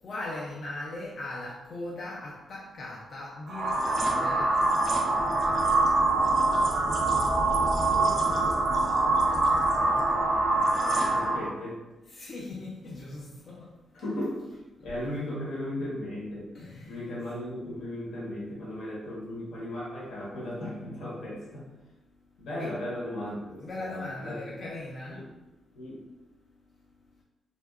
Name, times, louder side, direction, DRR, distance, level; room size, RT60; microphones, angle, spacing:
voice 1, 0.0-5.0 12.1-13.7 16.5-17.1 22.6-22.7 23.6-25.3, left 2 dB, 45° left, -4 dB, 0.3 m, -39 dB
sound 1, 3.5-11.5, right 2 dB, 55° right, 0.4 m, -24 dB
voice 2, 7.9-8.6 11.0-11.8 13.9-14.4 14.8-16.5 16.8-21.7 22.4-24.6 25.1-25.2 25.7-26.0, left 1 dB, 90° left, -6 dB, 1.2 m, -36 dB
2.7 x 2.3 x 2.3 m, 1.0 s
wide cardioid pair, 155°, 0 cm